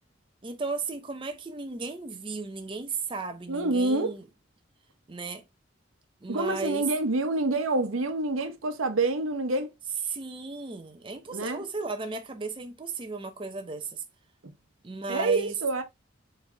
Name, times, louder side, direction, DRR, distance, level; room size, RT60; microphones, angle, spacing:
voice 1, 0.4-4.2 5.1-5.4 6.2-6.8 10.1-14.0 14.8-15.5, right 3 dB, 25° right, 0.6 m, -35 dB
voice 2, 3.5-4.1 6.3-9.7 11.3-11.6 15.1-15.8, right 2 dB, 90° right, 0.9 m, -27 dB
4.7 x 3.3 x 3.3 m
head